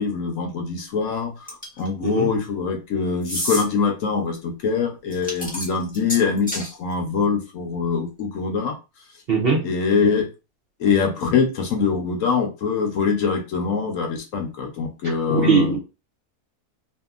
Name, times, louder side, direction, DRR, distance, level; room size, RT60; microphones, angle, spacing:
voice 1, 0.0-1.3 1.8-8.7 9.6-10.3 10.8-15.8, left 5 dB, 65° left, 1.0 m, -23 dB
sound 1, 1.5-1.9 3.2-3.6 5.1-6.7, equal, 5° left, 0.8 m, -29 dB
voice 2, 9.3-9.6 15.0-15.8, right 5 dB, 55° right, 0.7 m, -21 dB
2.7 x 2.7 x 2.4 m
omnidirectional pair, 1.6 m